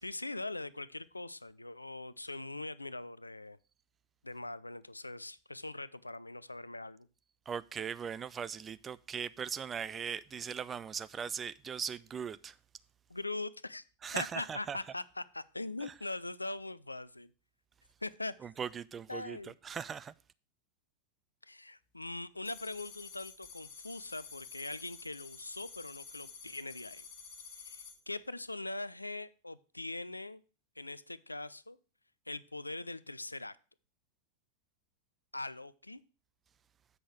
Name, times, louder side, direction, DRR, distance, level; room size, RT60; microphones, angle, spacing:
voice 1, 0.0-3.6 4.2-7.1 13.1-13.8 14.1-17.3 18.0-18.5 19.1-19.5 21.4-27.0 27.6-30.4 30.8-31.8 32.3-33.6 35.3-36.0, left 2 dB, 85° left, 0.4 m, -42 dB
voice 2, 7.5-12.6 14.0-14.8 15.8-15.9 18.4-20.1, right 7 dB, 20° right, 0.3 m, -39 dB
sound 1, 22.5-28.0, left 6 dB, 45° left, 1.7 m, -50 dB
7.9 x 6.0 x 4.7 m
figure-of-eight pair, 90°, 0 cm